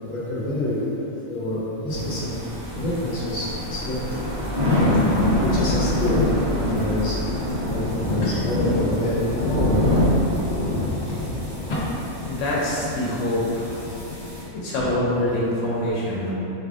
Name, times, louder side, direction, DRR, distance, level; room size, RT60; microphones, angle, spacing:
voice 1, 0.0-0.8 1.3-2.3 2.8-4.3 5.4-6.3 6.7-7.2 7.7-9.1 9.5-9.8 10.6-11.2 11.7-11.8 14.8-14.9, left 1 dB, 35° left, -8 dB, 1.1 m, -27 dB
sound 1, 1.9-14.4, left 1 dB, 35° right, 1.1 m, -25 dB
voice 2, 12.2-13.8 14.5-16.3, left 1 dB, 80° left, -5 dB, 1.0 m, -25 dB
4.6 x 3.4 x 2.5 m, 2.9 s
omnidirectional pair, 1.3 m